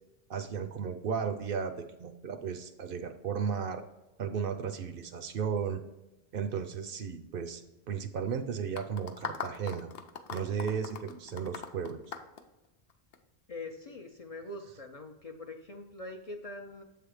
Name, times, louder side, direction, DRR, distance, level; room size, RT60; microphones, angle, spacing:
voice 1, 0.3-3.8 4.2-5.8 6.3-7.6 7.9-9.9 10.3-12.0, right 6 dB, 65° right, 8 dB, 0.7 m, -34 dB
sound 1, 8.8-13.2, left 6 dB, 75° left, 0.8 m, -40 dB
voice 2, 13.5-16.8, left 2 dB, 45° left, 3 dB, 0.5 m, -43 dB
7.5 x 3.4 x 4.8 m, 1.0 s
omnidirectional pair, 1.0 m